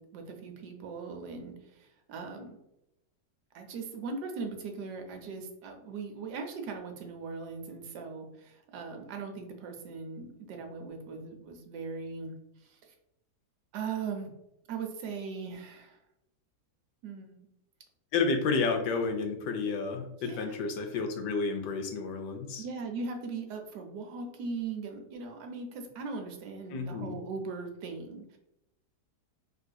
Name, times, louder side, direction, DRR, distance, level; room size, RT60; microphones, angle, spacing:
voice 1, 0.0-2.6 3.5-12.3 12.7-12.8 13.7-14.3 14.7-16.0 17.0-17.4 20.2-20.6 22.6-28.4, right 4 dB, 85° right, 4 dB, 1.2 m, -39 dB
voice 2, 18.1-22.6 26.7-27.2, left 4 dB, 90° left, 5 dB, 1.2 m, -31 dB
3.7 x 2.5 x 2.2 m, 0.85 s
omnidirectional pair, 1.7 m